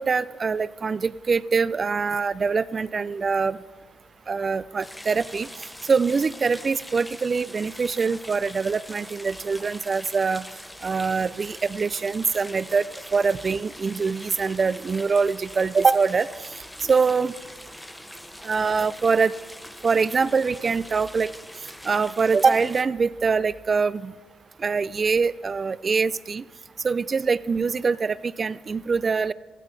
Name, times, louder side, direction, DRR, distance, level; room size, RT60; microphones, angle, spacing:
voice 1, 0.0-3.6 4.3-5.5 5.9-10.5 10.8-12.8 13.1-16.3 16.9-17.3 18.4-19.3 19.8-21.3 21.8-24.1 24.6-26.4 26.8-29.3, right 5 dB, 35° right, 19 dB, 0.4 m, -23 dB
sound 1, 4.8-22.8, left 1 dB, 5° left, 0.6 m, -43 dB
15.5 x 15.0 x 4.1 m, 1.4 s
cardioid pair, 90°, 0 cm